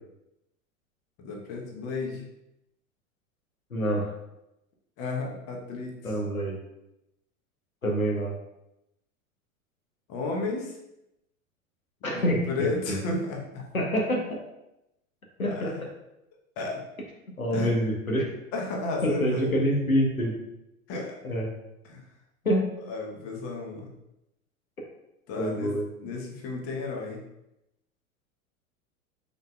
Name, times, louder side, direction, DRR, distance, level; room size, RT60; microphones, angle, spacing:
voice 1, 1.2-2.3 5.0-6.1 10.1-10.8 12.1-13.6 15.5-15.9 16.6-16.8 17.5-17.8 18.5-19.5 20.9-21.2 21.9-22.0 22.9-23.9 25.3-27.2, left 3 dB, 35° left, 0 dB, 1.1 m, -33 dB
voice 2, 3.7-4.1 6.0-6.6 7.8-8.3 12.0-13.0 13.7-14.4 15.4-15.9 17.4-18.3 19.0-20.3 21.2-21.5 22.4-22.7 25.4-25.8, equal, 90° left, 0 dB, 0.9 m, -26 dB
5.2 x 4.0 x 2.3 m, 0.87 s
figure-of-eight pair, 90°, 41 cm